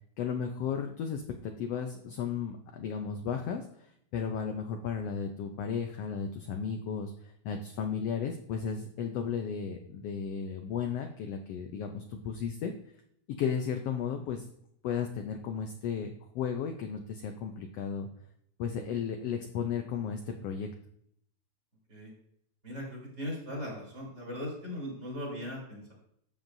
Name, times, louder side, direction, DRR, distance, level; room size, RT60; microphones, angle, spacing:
voice 1, 0.2-3.9 4.1-12.7 13.4-14.4 14.8-18.1 18.6-20.7, left 7 dB, 75° left, 4 dB, 1.5 m, -34 dB
voice 2, 22.6-25.9, left 1 dB, 30° right, -3 dB, 4.4 m, -39 dB
13.5 x 7.1 x 2.6 m, 0.69 s
omnidirectional pair, 3.4 m